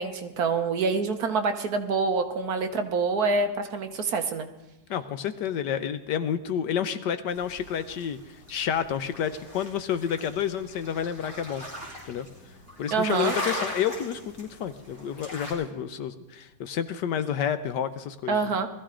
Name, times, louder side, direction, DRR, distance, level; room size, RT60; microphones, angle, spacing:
voice 1, 0.0-4.5 12.9-13.3 18.3-18.7, right 4 dB, 60° right, 7 dB, 1.3 m, -26 dB
voice 2, 4.9-11.6 12.0-12.3 12.8-18.5, left 8 dB, 70° left, 11 dB, 1.3 m, -30 dB
sound 1, 7.3-15.5, left 1 dB, 30° left, 4.5 m, -39 dB
20.0 x 14.0 x 3.8 m, 1.0 s
omnidirectional pair, 2.1 m